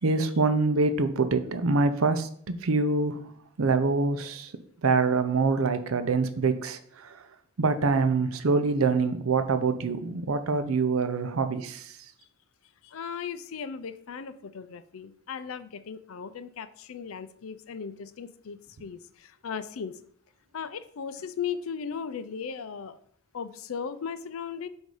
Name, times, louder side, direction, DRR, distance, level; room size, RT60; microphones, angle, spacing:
voice 1, 0.0-3.3 3.6-4.5 4.8-7.2 7.6-12.0, right 4 dB, 80° right, 10 dB, 0.6 m, -25 dB
voice 2, 12.8-20.0 20.5-23.0 23.3-24.7, left 6 dB, 75° left, 13 dB, 0.5 m, -37 dB
8.1 x 2.7 x 4.8 m, 0.64 s
head